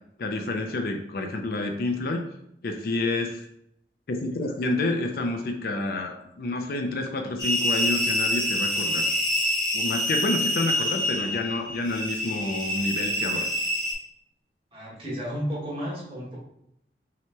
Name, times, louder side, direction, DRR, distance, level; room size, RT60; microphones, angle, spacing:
voice 1, 0.2-2.3 2.6-3.4 4.1-9.1 9.7-13.5, left 2 dB, 55° left, 4 dB, 0.5 m, -29 dB
sound 1, 7.4-13.9, left 1 dB, 25° left, 0.9 m, -26 dB
voice 2, 14.7-16.4, equal, 30° right, -7 dB, 1.6 m, -32 dB
5.8 x 3.0 x 2.2 m, 0.77 s
head